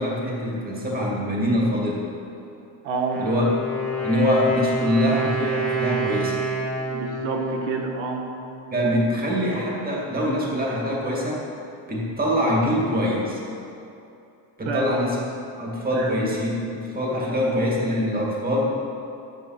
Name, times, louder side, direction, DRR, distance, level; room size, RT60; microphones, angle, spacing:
voice 1, 0.0-2.0 3.2-3.6 4.0-6.4 8.7-11.4 11.9-13.4 14.6-15.2 15.6-18.6, equal, 20° right, -3 dB, 2.3 m, -24 dB
voice 2, 2.8-3.3 6.9-8.2 14.6-15.0 15.9-16.1 17.1-17.4, right 4 dB, 85° right, 1 dB, 1.6 m, -28 dB
Wind instrument woodwind instrument, 3.0-8.7, right 2 dB, 5° left, 2.1 m, -28 dB
10.5 x 9.1 x 5.9 m, 2.7 s
cardioid pair, 155°, 44 cm